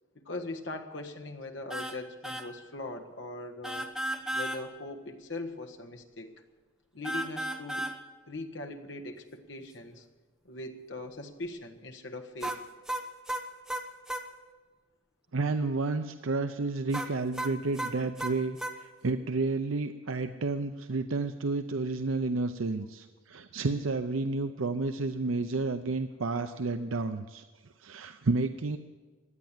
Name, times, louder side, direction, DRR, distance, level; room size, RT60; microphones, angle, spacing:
voice 1, 0.2-3.9 4.3-6.3 6.9-7.9 8.3-10.1 10.4-12.6, left 2 dB, 65° left, 3 dB, 1.6 m, -40 dB
sound 1, 1.7-2.0 2.2-2.5 3.6-4.6 7.0-8.0 12.4-14.3 16.9-18.8, right 1 dB, 5° right, 1.0 m, -34 dB
voice 2, 15.3-27.4 27.8-28.8, right 3 dB, 90° right, 8 dB, 0.7 m, -31 dB
16.5 x 10.5 x 7.4 m, 1.3 s
head